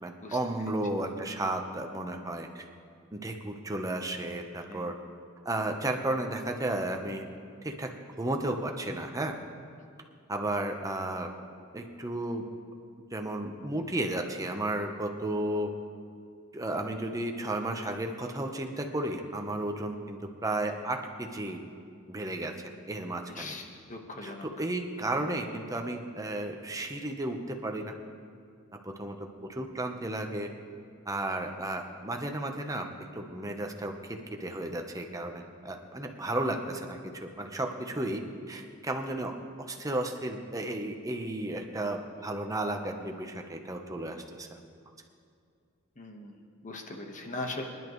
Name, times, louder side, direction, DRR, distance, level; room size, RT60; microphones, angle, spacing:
voice 1, 0.0-2.7 3.1-4.9 5.4-7.2 7.6-7.9 8.2-9.3 10.3-11.3 11.7-12.4 13.1-15.7 16.5-21.6 22.1-23.5 24.2-27.9 28.8-29.2 29.5-30.5 31.1-32.9 33.1-38.2 38.5-39.3 39.6-44.5, right 1 dB, 15° right, 3 dB, 0.9 m, -33 dB
voice 2, 23.3-24.5 46.0-47.6, left 2 dB, 35° left, 3 dB, 1.3 m, -40 dB
25.0 x 11.0 x 3.2 m, 2.3 s
head